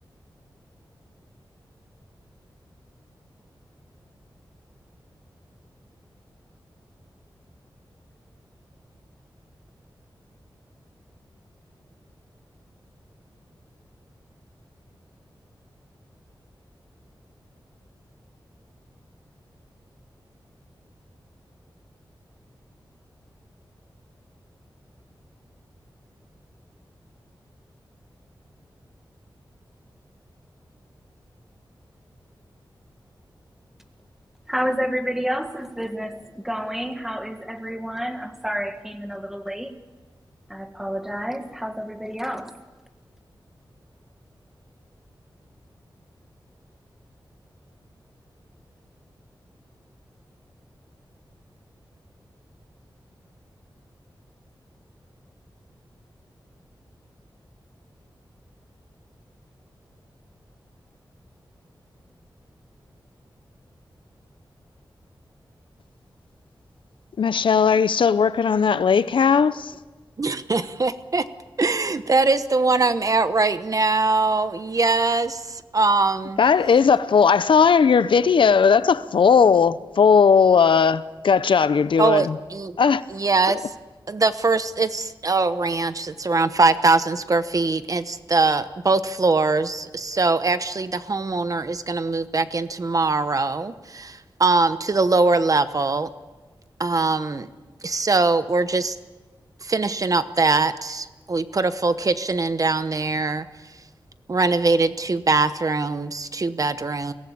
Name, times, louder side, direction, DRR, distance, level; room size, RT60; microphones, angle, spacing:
voice 1, 34.5-39.7 40.5-42.6, equal, 5° right, 1.7 m, -29 dB
voice 2, 67.2-69.7 76.4-82.4 82.8-83.0, left 6 dB, 90° left, 0.7 m, -17 dB
voice 3, 70.2-71.2 71.6-76.4 82.0-82.8 83.1-83.6 84.1-96.1 96.8-97.5 97.8-99.0 99.6-103.5 104.3-107.1, right 3 dB, 45° right, 1.0 m, -22 dB
23.0 x 18.0 x 8.6 m
wide cardioid pair, 110°, 8 cm